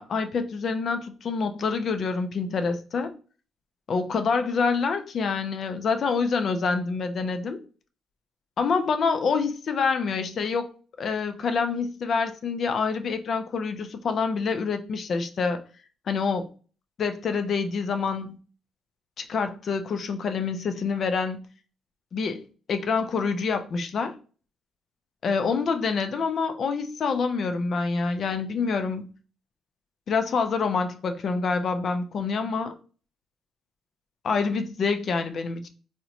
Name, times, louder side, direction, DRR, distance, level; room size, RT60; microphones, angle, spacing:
voice 1, 0.0-3.1 3.9-7.6 8.6-10.7 11.0-15.6 16.1-16.5 17.0-18.4 19.2-21.4 22.1-22.4 22.7-24.1 25.2-29.1 30.1-32.8 34.2-35.7, left 5 dB, 55° left, 0.3 m, -26 dB
2.8 x 2.0 x 2.5 m
cardioid pair, 90°, 0 cm